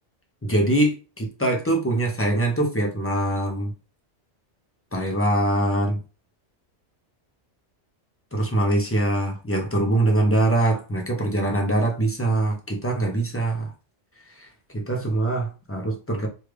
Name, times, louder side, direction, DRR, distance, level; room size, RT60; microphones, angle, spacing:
voice 1, 0.4-3.7 4.9-6.0 8.3-13.7 14.4-14.5 14.7-16.3, right 1 dB, 20° left, 1 dB, 0.4 m, -23 dB
3.2 x 2.4 x 3.2 m, 0.33 s
omnidirectional pair, 1.2 m